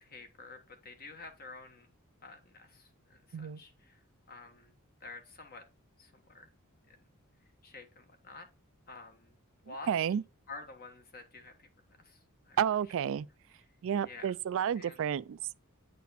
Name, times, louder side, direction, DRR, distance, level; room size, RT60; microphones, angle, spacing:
voice 1, 0.0-1.9 2.2-4.0 4.3-4.7 5.0-5.6 6.0-6.5 6.9-7.0 7.6-8.5 8.9-9.3 9.6-9.9 10.5-11.7 12.0-12.2 12.4-12.6 14.0-14.3 14.8-15.0, left 3 dB, 45° left, 1.4 m, -49 dB
voice 2, 9.7-10.2 12.6-13.3 13.8-15.6, right 8 dB, 65° right, 0.3 m, -31 dB
9.3 x 4.1 x 4.1 m
head